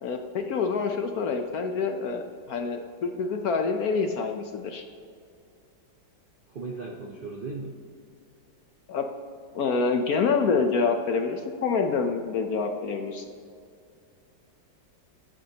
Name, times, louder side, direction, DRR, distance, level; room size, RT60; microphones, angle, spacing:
voice 1, 0.0-4.8 8.9-9.0 9.5-13.2, left 5 dB, 65° left, 5 dB, 1.0 m, -27 dB
voice 2, 6.5-7.8, right 3 dB, 50° right, -1 dB, 0.6 m, -36 dB
20.5 x 7.6 x 2.9 m, 2.4 s
omnidirectional pair, 2.0 m